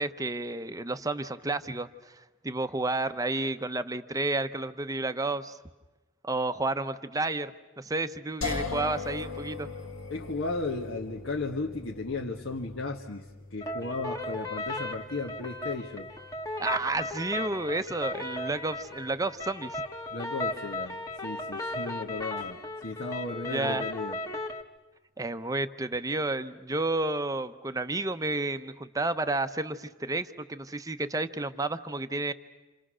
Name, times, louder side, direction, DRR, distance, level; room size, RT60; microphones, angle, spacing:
voice 1, 0.0-5.6 6.2-7.5 7.8-9.7 16.6-19.8 23.4-23.8 25.2-32.3, right 2 dB, 15° right, 9 dB, 0.8 m, -31 dB
sound 1, 8.4-21.5, left 4 dB, 85° left, 2.4 m, -42 dB
voice 2, 10.1-13.2 13.5-16.1 20.1-24.2, left 3 dB, 70° left, 0 dB, 1.5 m, -35 dB
sound 2, 13.6-24.6, left 2 dB, 15° left, 1.4 m, -36 dB
29.0 x 27.5 x 6.3 m, 1.1 s
head